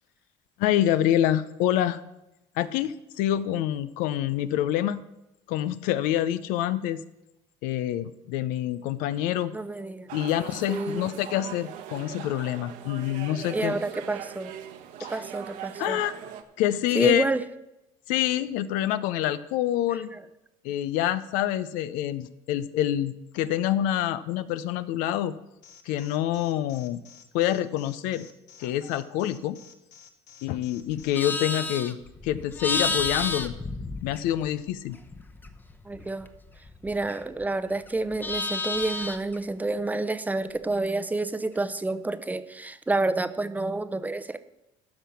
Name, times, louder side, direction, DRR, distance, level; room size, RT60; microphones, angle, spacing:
voice 1, 0.6-2.0 2.6-5.0 5.5-7.0 7.6-9.5 10.1-13.8 15.0-15.2 15.8-16.1 16.6-17.3 18.1-20.1 20.6-25.3 25.9-27.0 27.3-28.2 28.6-29.6 30.4-32.0 32.2-33.5 34.0-35.0, left 12 dB, 85° left, 14 dB, 0.6 m, -26 dB
voice 2, 9.5-10.1 10.7-11.1 13.5-14.5 15.1-16.0 16.9-17.4 20.1-20.2 35.8-36.3 36.8-44.4, right 2 dB, 10° right, 12 dB, 0.6 m, -29 dB
sound 1, 10.1-16.4, right 10 dB, 75° right, 1.2 m, -40 dB
Alarm, 25.6-31.2, left 8 dB, 65° left, 1.2 m, -51 dB
Livestock farm animals working animals, 30.9-34.6 34.9-37.5 37.8-39.4, left 3 dB, 15° left, 0.9 m, -32 dB
13.0 x 6.0 x 6.9 m, 0.91 s
cardioid pair, 110°, 14 cm